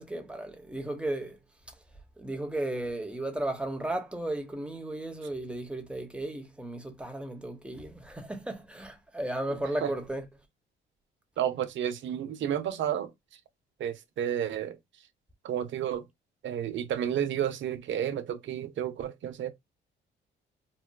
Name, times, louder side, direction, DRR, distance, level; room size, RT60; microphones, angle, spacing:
voice 1, 0.0-1.4 2.2-10.2, right 1 dB, 5° right, 1.0 m, -35 dB
voice 2, 9.5-9.9 11.4-13.1 13.8-14.8 15.4-16.1 16.4-19.5, right 10 dB, 70° right, 0.8 m, -31 dB
4.2 x 2.3 x 2.2 m
cardioid pair, 90°, 20 cm